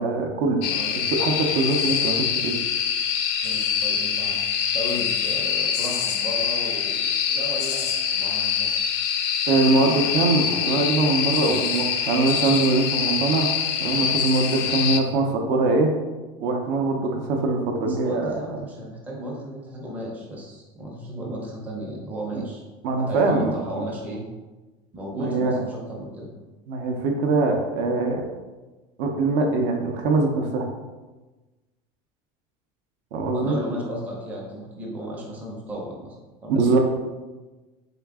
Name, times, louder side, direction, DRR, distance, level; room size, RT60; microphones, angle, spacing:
voice 1, 0.0-2.6 9.5-15.9 16.4-18.4 22.3-22.4 22.8-23.9 25.2-25.6 26.7-28.2 29.0-30.7 33.1-33.6 36.5-36.8, right 3 dB, 55° right, 2 dB, 0.6 m, -23 dB
sound 1, 0.6-15.0, left 7 dB, 55° left, 0.4 m, -25 dB
voice 2, 3.4-8.8 17.9-22.6 22.9-24.2 24.9-26.3 33.3-36.2 36.4-36.5, equal, 10° right, -3 dB, 0.6 m, -34 dB
4.0 x 3.7 x 3.6 m, 1.2 s
cardioid pair, 175°, 16 cm